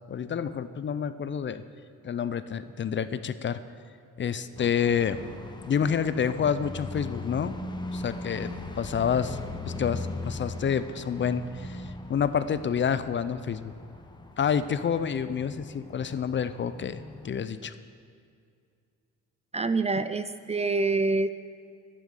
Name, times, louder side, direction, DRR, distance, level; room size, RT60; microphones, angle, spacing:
voice 1, 0.1-1.6 2.0-3.6 4.2-5.3 5.7-7.5 7.9-9.4 9.7-13.7 14.4-17.7, left 7 dB, 40° left, 13 dB, 0.5 m, -28 dB
sound 1, 4.6-17.3, left 2 dB, 15° left, 1.1 m, -40 dB
voice 2, 19.5-21.3, right 3 dB, 20° right, 12 dB, 0.4 m, -26 dB
11.0 x 10.5 x 6.6 m, 2.3 s
cardioid pair, 90°, 30 cm